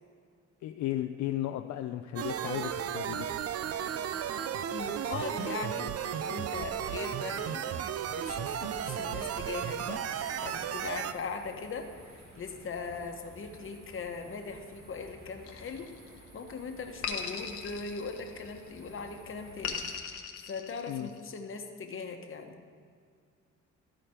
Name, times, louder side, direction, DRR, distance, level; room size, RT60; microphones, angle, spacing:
voice 1, 0.6-3.3 20.9-21.1, left 13 dB, 70° left, 6 dB, 0.5 m, -34 dB
sound 1, 2.2-11.1, right 9 dB, 55° right, 0.5 m, -34 dB
voice 2, 4.7-7.6 8.1-10.1 10.4-15.9 16.3-22.5, left 4 dB, 45° left, 4 dB, 1.1 m, -40 dB
sound 2, 8.2-20.0, right 1 dB, 70° right, 2.2 m, -53 dB
sound 3, 15.4-16.3 17.0-18.7 19.6-21.3, left 6 dB, 90° left, 0.9 m, -39 dB
13.5 x 5.0 x 4.4 m, 2.1 s
cardioid pair, 90°, 30 cm